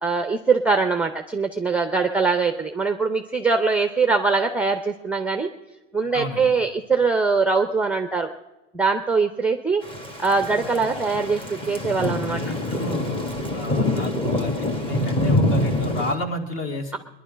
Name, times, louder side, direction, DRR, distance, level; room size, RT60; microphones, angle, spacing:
voice 1, 0.0-5.5 5.9-8.3 8.7-9.8 10.2-12.4, right 4 dB, 5° right, 6 dB, 0.6 m, -22 dB
voice 2, 6.1-6.5 12.3-17.0, left 1 dB, 35° left, 5 dB, 2.1 m, -31 dB
Thunder / Rain, 9.8-16.1, left 1 dB, 15° left, 1.4 m, -25 dB
20.5 x 11.0 x 5.1 m, 1.0 s
supercardioid pair, 120°, 37 cm